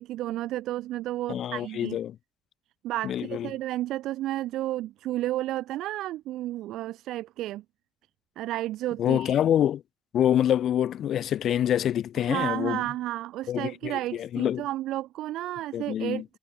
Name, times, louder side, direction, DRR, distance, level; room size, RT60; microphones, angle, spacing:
voice 1, 0.0-2.0 2.8-7.6 8.4-9.4 12.2-16.2, right 15 dB, 90° right, 3.5 m, -32 dB
voice 2, 1.3-2.2 3.0-3.5 9.0-9.8 10.1-12.8 13.5-14.7 15.7-16.2, left 10 dB, 70° left, 1.5 m, -26 dB
cardioid pair, 90°, 0 cm